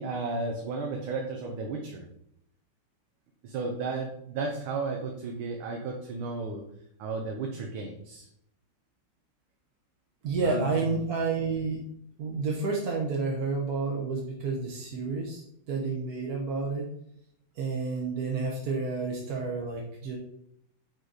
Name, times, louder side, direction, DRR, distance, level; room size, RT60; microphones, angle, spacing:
voice 1, 0.0-2.1 3.4-6.6 7.0-8.3 10.4-10.7, right 3 dB, 70° right, 1 dB, 1.6 m, -33 dB
voice 2, 10.2-11.8 12.2-15.4 15.7-16.9 17.6-20.2, right 4 dB, 55° right, -1 dB, 1.2 m, -30 dB
6.6 x 4.7 x 4.0 m, 0.71 s
omnidirectional pair, 2.4 m